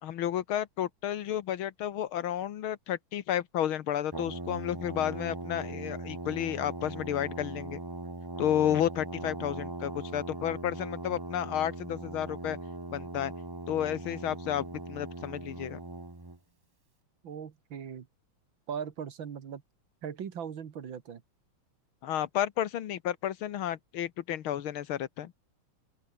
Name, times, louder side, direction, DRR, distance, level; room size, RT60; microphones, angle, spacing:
voice 1, 0.0-7.8 8.4-12.6 12.9-13.3 13.7-15.8 22.0-25.3, left 11 dB, 75° left, 1.9 m, -32 dB
Brass instrument, 4.1-16.4, right 2 dB, 15° right, 0.9 m, -40 dB
voice 2, 17.2-18.1 18.7-19.6 20.0-21.2, right 7 dB, 65° right, 2.3 m, -39 dB
open air
omnidirectional pair, 2.3 m